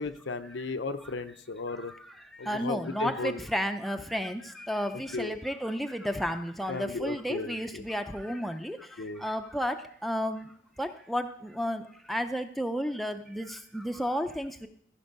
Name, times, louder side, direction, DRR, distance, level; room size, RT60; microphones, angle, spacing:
voice 1, 0.0-1.9 2.4-3.4 5.1-5.4 6.7-7.8 9.0-9.2, left 3 dB, 80° left, 10 dB, 0.7 m, -35 dB
voice 2, 2.5-8.8 9.2-9.8 10.0-10.5 10.8-11.8 12.1-14.7, equal, ahead, 6 dB, 0.5 m, -32 dB
14.5 x 5.3 x 5.3 m, 0.65 s
head